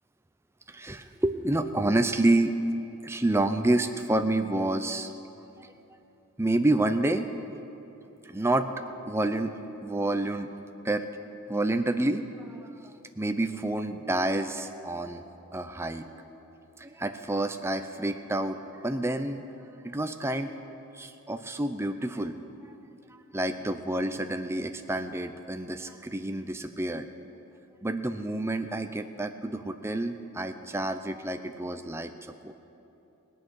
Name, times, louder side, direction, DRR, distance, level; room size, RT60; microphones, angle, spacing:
voice 1, 0.7-2.5 3.0-5.1 5.6-5.7 6.4-7.3 8.2-8.7 9.1-9.5 9.8-10.5 10.8-11.1 11.5-15.2 15.5-16.1 16.8-19.5 19.8-20.5 20.9-22.5 23.3-27.1 27.8-32.1 32.4-32.5, right 2 dB, 10° right, 8 dB, 0.5 m, -28 dB
18.5 x 6.5 x 9.7 m, 2.9 s
head